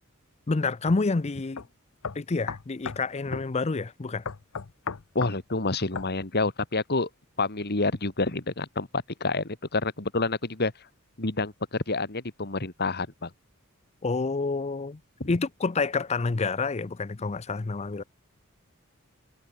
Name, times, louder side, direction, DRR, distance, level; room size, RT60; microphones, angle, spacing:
voice 1, 0.5-1.6 2.1-4.2 14.0-15.0 15.3-18.0, left 3 dB, 30° left, 0.5 m, -28 dB
sound 1, 0.9-1.0 1.6-1.7 2.0-3.0 3.3-3.5 4.3-5.4 6.0-6.1, left 5 dB, 70° left, 0.7 m, -35 dB
voice 2, 5.1-7.1 7.4-10.7 11.2-13.3 15.2-15.3, left 3 dB, 50° left, 2.3 m, -28 dB
head